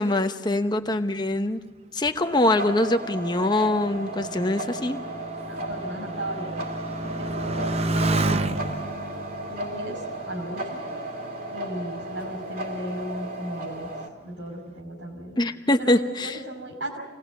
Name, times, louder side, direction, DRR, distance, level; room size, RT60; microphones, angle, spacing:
voice 1, 0.0-1.6 1.9-5.0 15.4-16.4, left 1 dB, 20° left, 7 dB, 0.9 m, -23 dB
Motorcycle, 2.2-11.2 12.0-12.5, right 2 dB, 35° right, 0.7 m, -31 dB
sound 1, 2.2-14.1, right 1 dB, 50° right, 2.9 m, -35 dB
voice 2, 5.5-6.7 7.0-8.6 9.5-10.8 11.5-13.9 14.2-15.4 15.8-17.0, right 1 dB, 75° right, 4 dB, 5.5 m, -35 dB
26.0 x 18.5 x 8.2 m, 1.3 s
head